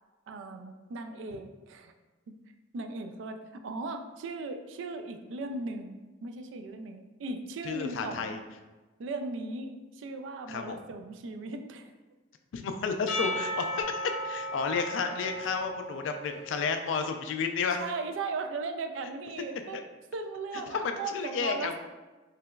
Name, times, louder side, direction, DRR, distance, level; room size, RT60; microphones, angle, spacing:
voice 1, 0.3-1.9 2.3-2.4 2.7-8.4 9.0-11.9 17.8-19.9 20.1-21.8, right 3 dB, 75° right, 6 dB, 0.3 m, -37 dB
voice 2, 7.7-8.4 10.5-10.8 12.5-14.0 14.2-17.8 19.7-19.8 20.7-21.8, left 5 dB, 75° left, 6 dB, 0.3 m, -32 dB
Percussion / Church bell, 13.1-16.7, equal, 60° left, 0.7 m, -35 dB
3.2 x 2.9 x 2.3 m, 1.2 s
head